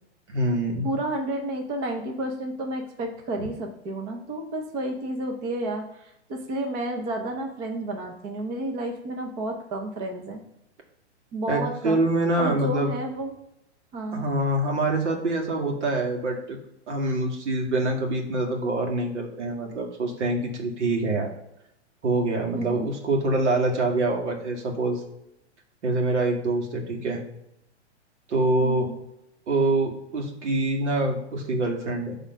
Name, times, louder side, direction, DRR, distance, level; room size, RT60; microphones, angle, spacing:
voice 1, 0.3-1.0 11.5-12.9 14.1-16.6 16.9-21.3 22.0-25.0 25.8-27.2 28.3-28.9 29.5-32.2, right 2 dB, 80° right, 1 dB, 2.2 m, -25 dB
voice 2, 0.8-10.4 11.3-12.0 12.4-13.3 13.9-14.3 22.5-22.9 28.6-29.0, right 1 dB, 15° right, 3 dB, 0.5 m, -31 dB
6.0 x 3.6 x 5.4 m, 0.84 s
hypercardioid pair, 160°, 35 cm